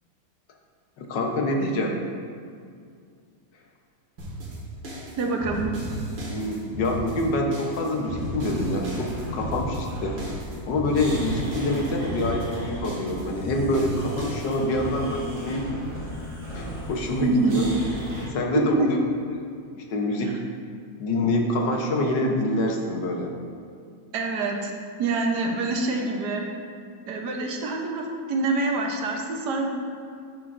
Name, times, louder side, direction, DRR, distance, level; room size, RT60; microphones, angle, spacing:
voice 1, 1.0-2.1 6.2-10.2 10.7-15.7 16.5-17.7 18.3-19.0 19.7-20.4 21.0-23.3, left 1 dB, 80° left, 1 dB, 1.7 m, -26 dB
sound 1, 4.2-14.9, right 1 dB, 85° right, 2.4 m, -35 dB
voice 2, 5.2-5.7 17.2-17.6 18.5-18.9 24.1-24.7 25.0-26.5 27.1-29.7, right 3 dB, 70° right, 2 dB, 1.5 m, -25 dB
sound 2, 7.9-18.3, equal, 50° right, 2.4 m, -36 dB
10.0 x 8.9 x 2.6 m, 2.2 s
omnidirectional pair, 1.9 m